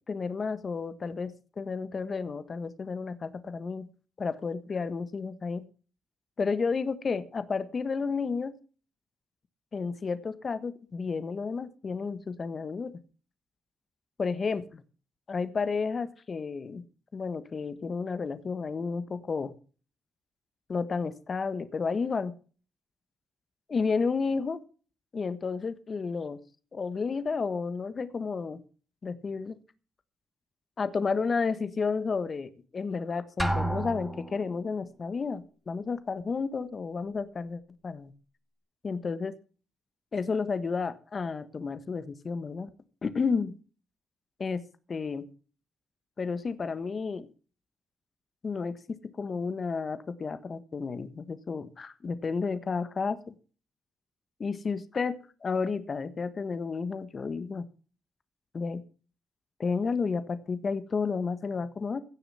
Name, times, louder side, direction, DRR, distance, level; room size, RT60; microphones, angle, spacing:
voice 1, 0.1-3.9 4.2-5.6 6.4-8.5 9.7-13.0 14.2-14.8 15.3-16.8 17.1-19.5 20.7-22.3 23.7-24.6 25.1-26.4 26.7-28.6 29.0-29.5 30.8-38.1 38.8-39.3 40.1-42.7 43.0-43.5 44.4-44.6 44.9-45.3 46.2-47.3 48.4-53.3 54.4-57.7 58.5-58.8 59.6-62.0, left 5 dB, 45° left, 12 dB, 1.4 m, -31 dB
Drum, 33.4-34.6, right 1 dB, ahead, 2.0 m, -31 dB
16.5 x 6.9 x 5.7 m, 0.38 s
cardioid pair, 85°, 0 cm